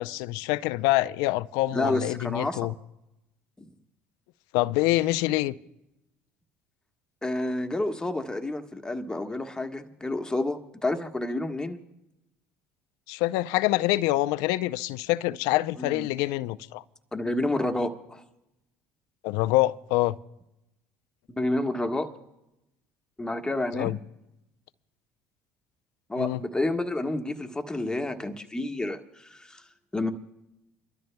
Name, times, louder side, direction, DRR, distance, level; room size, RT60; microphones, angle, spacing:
voice 1, 0.0-2.7 4.5-5.6 13.1-16.8 19.2-20.1 23.7-24.0 26.2-26.4, left 18 dB, 75° left, 0.5 m, -26 dB
voice 2, 1.7-2.6 7.2-11.8 15.8-16.1 17.1-18.2 21.3-22.1 23.2-23.9 26.1-29.6 29.9-30.1, left 2 dB, 10° left, 1.4 m, -29 dB
29.5 x 13.0 x 2.2 m
supercardioid pair, 80°, 6 cm